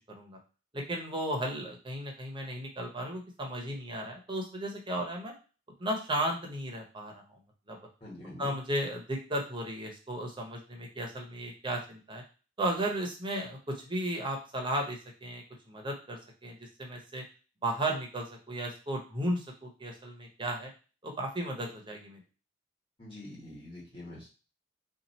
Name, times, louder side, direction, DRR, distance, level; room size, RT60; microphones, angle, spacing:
voice 1, 0.1-0.4 0.7-5.3 5.8-7.2 7.7-7.8 8.4-12.2 12.6-17.2 17.6-20.7 21.0-22.2, right 1 dB, 25° right, 1 dB, 0.8 m, -35 dB
voice 2, 8.0-8.6 23.0-24.3, left 1 dB, 30° left, -6 dB, 1.5 m, -45 dB
2.8 x 2.4 x 4.1 m, 0.34 s
head